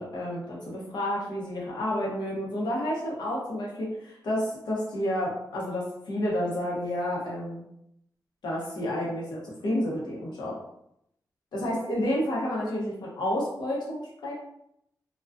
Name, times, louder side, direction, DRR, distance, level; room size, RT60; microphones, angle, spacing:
voice 1, 0.0-7.6 8.4-10.6 11.5-14.3, left 1 dB, 85° left, -4 dB, 0.8 m, -30 dB
2.3 x 2.2 x 2.4 m, 0.76 s
wide cardioid pair, 150°, 7 cm